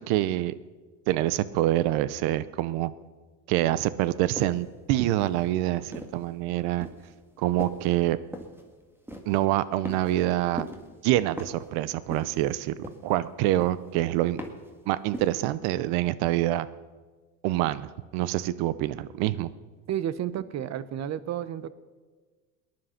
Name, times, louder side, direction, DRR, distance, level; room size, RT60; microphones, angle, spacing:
voice 1, 0.1-0.5 1.1-2.9 3.5-6.9 7.4-8.2 9.3-10.7 11.0-12.7 13.0-14.4 14.9-16.7 17.4-19.5, right 15 dB, 75° right, 17 dB, 0.8 m, -26 dB
sound 1, 4.4-4.7 5.2-6.3 6.8-7.1 7.6-7.9 8.3-8.6 9.1-9.4 9.9-10.3 10.6-10.9 11.4-11.7 12.1-12.5 12.8-13.2 13.6-13.9 14.4-14.7 15.1-15.4, equal, 5° right, 1.9 m, -39 dB
voice 2, 19.9-21.7, right 10 dB, 45° right, 16 dB, 0.9 m, -31 dB
19.0 x 11.0 x 5.8 m, 1.4 s
supercardioid pair, 110°, 38 cm